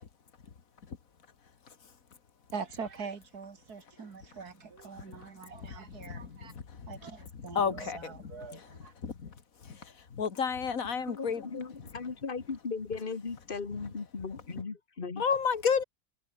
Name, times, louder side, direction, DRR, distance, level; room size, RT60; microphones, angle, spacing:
voice 1, 2.5-6.5 6.9-8.9, right 5 dB, 60° right, 2.5 m, -43 dB
voice 2, 5.9-6.9 7.6-8.1 8.5-8.6 9.0-9.1 9.7-9.8 10.2-11.4 15.2-15.8, left 6 dB, 50° left, 2.2 m, -31 dB
voice 3, 10.7-15.2, left 4 dB, 30° left, 1.7 m, -38 dB
omnidirectional pair, 1.9 m